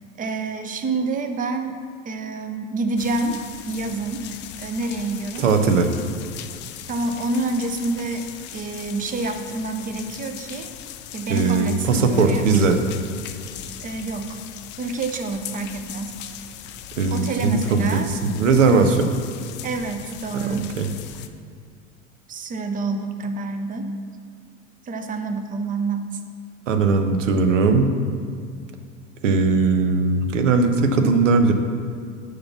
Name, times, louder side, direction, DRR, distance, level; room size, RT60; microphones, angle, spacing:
voice 1, 0.2-3.4 3.7-4.3 4.6-5.5 6.9-10.7 11.1-12.5 13.8-14.4 14.8-16.1 17.1-18.1 19.6-20.7 22.3-23.9 24.9-26.1, right 3 dB, 20° right, 6 dB, 0.7 m, -27 dB
sound 1, 3.0-21.3, left 10 dB, 30° left, 0.4 m, -39 dB
voice 2, 5.4-5.9 11.3-12.8 17.0-19.1 20.3-20.9 26.7-27.9 29.2-31.5, right 4 dB, 65° right, 6 dB, 1.0 m, -19 dB
6.7 x 5.5 x 7.2 m, 2.2 s
figure-of-eight pair, 80°, 40 cm